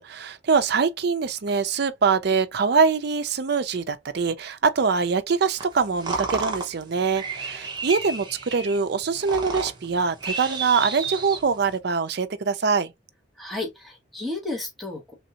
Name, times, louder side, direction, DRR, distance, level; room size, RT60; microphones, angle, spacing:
voice 1, 0.0-12.9, right 5 dB, 55° right, 0.5 m, -23 dB
sound 1, 5.6-11.8, right 4 dB, 25° right, 0.8 m, -32 dB
voice 2, 13.4-15.1, left 2 dB, ahead, 1.1 m, -33 dB
3.4 x 2.7 x 2.8 m
head